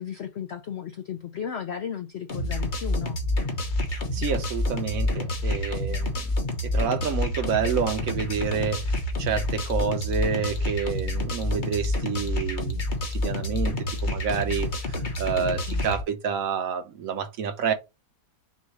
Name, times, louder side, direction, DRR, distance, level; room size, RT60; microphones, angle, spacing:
voice 1, 0.0-3.2 15.4-15.8, left 8 dB, 70° left, 0.6 m, -35 dB
sound 1, 2.3-16.0, left 1 dB, 35° left, 1.0 m, -28 dB
voice 2, 3.9-6.2 6.6-8.8 9.2-12.8 13.1-13.8 14.0-14.7 15.2-17.7, right 7 dB, 60° right, 1.0 m, -28 dB
6.3 x 2.4 x 3.0 m
omnidirectional pair, 1.9 m